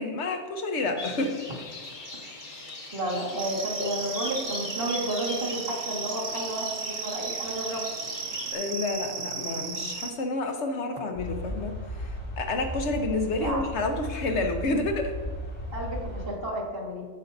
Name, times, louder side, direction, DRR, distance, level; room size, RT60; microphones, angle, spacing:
voice 1, 0.0-1.4 8.5-15.2, left 2 dB, 65° left, 4 dB, 1.3 m, -29 dB
sound 1, 1.0-8.5, left 2 dB, 40° left, 1.2 m, -40 dB
voice 2, 2.9-7.8 13.4-13.6 15.7-17.1, right 1 dB, 50° right, -4 dB, 2.1 m, -31 dB
sound 2, 3.4-10.1, right 5 dB, 65° right, 1.0 m, -35 dB
sound 3, 11.1-16.3, equal, 85° left, 3.2 m, -36 dB
16.0 x 5.4 x 2.7 m, 1.4 s
omnidirectional pair, 1.3 m